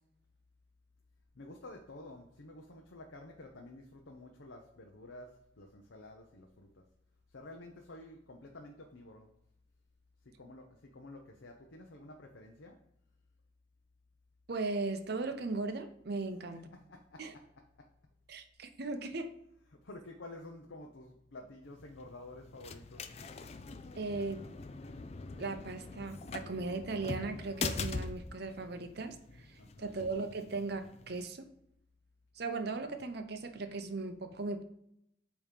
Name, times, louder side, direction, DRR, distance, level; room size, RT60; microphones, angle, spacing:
voice 1, 1.3-6.8 7.3-9.3 10.2-12.8 16.7-17.2 17.8-17.9 19.8-23.1 29.6-30.0, left 2 dB, 80° left, 2 dB, 0.8 m, -51 dB
voice 2, 14.5-16.7 17.2-17.3 18.3-19.4 23.9-24.5 25.4-31.5 32.3-34.6, right 3 dB, 60° right, 8 dB, 0.7 m, -38 dB
sound 1, 21.6-31.3, left 4 dB, 35° left, 0.4 m, -43 dB
8.5 x 3.0 x 5.1 m, 0.74 s
head